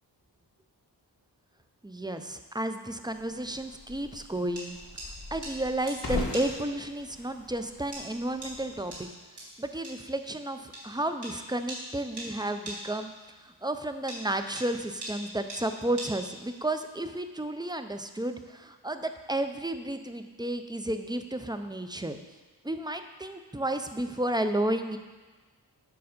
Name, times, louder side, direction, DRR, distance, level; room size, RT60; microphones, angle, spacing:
voice 1, 1.8-4.8 5.3-9.1 9.6-13.1 13.4-22.2 22.6-25.0, right 1 dB, 10° right, 8 dB, 0.4 m, -32 dB
sound 1, 2.8-16.7, right 1 dB, 70° right, 2.4 m, -43 dB
sound 2, 3.1-9.0, left 2 dB, 60° left, 1.4 m, -40 dB
7.0 x 5.2 x 5.1 m, 1.3 s
wide cardioid pair, 65°, 41 cm